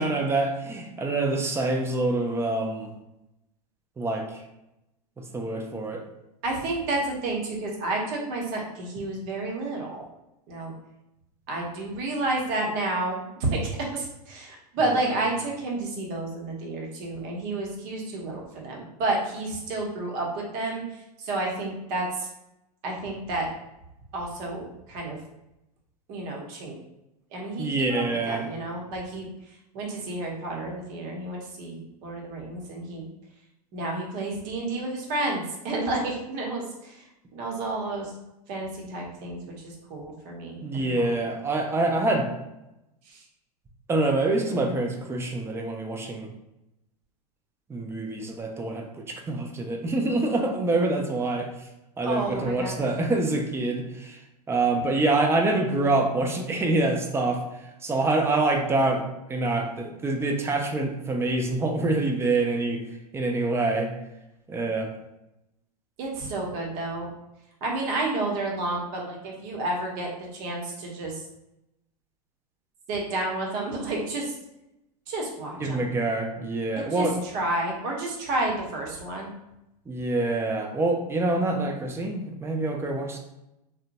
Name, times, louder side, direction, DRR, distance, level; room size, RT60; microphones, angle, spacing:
voice 1, 0.0-2.9 4.0-4.4 5.2-6.0 14.8-14.9 27.6-28.5 40.6-42.3 43.9-46.3 47.7-51.5 52.0-54.2 54.5-62.8 63.1-63.9 64.5-64.9 75.6-77.2 79.9-83.2, right 2 dB, 10° right, 2 dB, 0.4 m, -26 dB
voice 2, 6.4-10.0 10.5-10.7 11.5-13.6 13.9-20.8 21.2-22.3 22.8-23.5 24.1-25.2 26.1-26.8 27.3-29.3 29.7-33.1 33.7-37.0 37.3-38.1 38.5-39.4 39.9-41.1 52.0-52.8 66.0-67.1 67.6-71.1 72.9-74.3 75.1-75.8 77.0-77.1 77.3-79.3, right 2 dB, 45° right, -1 dB, 0.9 m, -30 dB
2.8 x 2.1 x 2.5 m, 0.90 s
hypercardioid pair, 105°, 20 cm